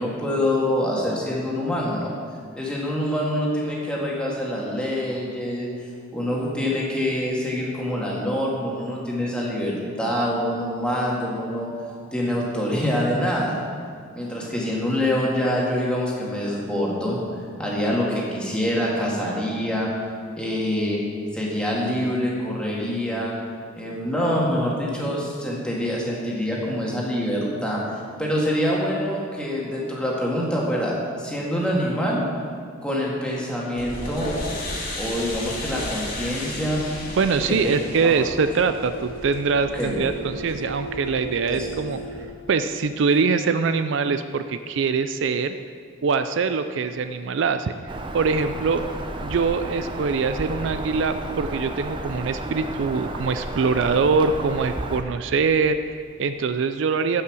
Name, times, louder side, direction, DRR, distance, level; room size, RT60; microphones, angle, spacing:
voice 1, 0.0-2.1 2.6-11.7 12.1-13.6 14.1-17.2 17.6-19.9 20.4-21.0 21.3-23.3 23.8-27.8 28.2-32.3 32.8-34.3 35.0-36.8 37.4-38.2 39.7-40.0 41.5-41.7, equal, 5° left, -4 dB, 1.9 m, -25 dB
sound 1, 33.7-42.2, equal, 45° left, 2.0 m, -34 dB
voice 2, 37.1-42.0 42.5-45.6 46.0-48.8 49.2-57.2, right 5 dB, 60° right, 10 dB, 0.4 m, -23 dB
Bird vocalization bird call bird song, 47.9-55.0, right 1 dB, 25° right, 0.7 m, -32 dB
15.0 x 5.6 x 6.1 m, 2.2 s
head